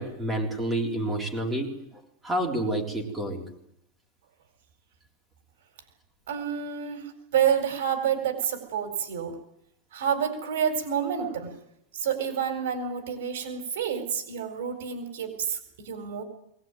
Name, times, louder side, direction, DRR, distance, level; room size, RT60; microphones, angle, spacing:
voice 1, 0.0-1.8 2.2-3.5, right 1 dB, 10° right, 1 dB, 3.8 m, -29 dB
voice 2, 6.3-9.4 9.9-11.5 12.0-16.2, right 8 dB, 75° right, 7 dB, 4.3 m, -29 dB
21.5 x 19.5 x 9.2 m, 0.78 s
supercardioid pair, 175°, 0 cm